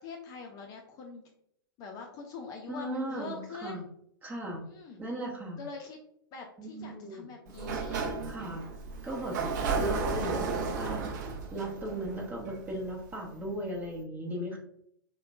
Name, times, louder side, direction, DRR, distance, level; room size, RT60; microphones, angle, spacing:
voice 1, 0.0-1.2 1.8-3.8 4.6-5.0 5.6-6.0 6.3-8.1 9.3-9.7, left 4 dB, 30° left, 2 dB, 0.5 m, -44 dB
voice 2, 2.7-3.8 4.2-4.6 5.0-5.6 6.6-7.3 8.2-8.6 9.0-9.4 9.8-10.5 10.7-11.1 11.5-14.6, right 1 dB, 15° right, -1 dB, 1.0 m, -36 dB
Sliding door, 7.5-13.1, right 4 dB, 55° right, 0.6 m, -33 dB
4.9 x 2.2 x 2.4 m, 0.71 s
figure-of-eight pair, 100°, 12 cm